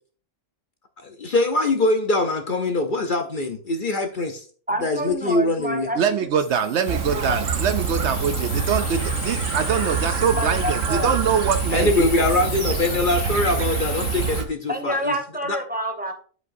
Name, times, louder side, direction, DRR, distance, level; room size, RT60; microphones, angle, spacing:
voice 1, 1.0-4.4 4.8-5.9 11.7-15.2 15.5-15.6, left 2 dB, 45° left, 0.8 m, -23 dB
voice 2, 4.7-6.2 6.6-7.4 10.3-11.1 14.7-16.1, equal, 10° right, 0.9 m, -28 dB
voice 3, 6.0-12.3, right 7 dB, 65° right, 0.8 m, -24 dB
sound 1, 6.4-14.4, left 7 dB, 75° left, 1.3 m, -35 dB
Chirp tweet, 6.9-14.5, right 6 dB, 90° right, 1.2 m, -26 dB
12.0 x 5.3 x 2.6 m
omnidirectional pair, 1.3 m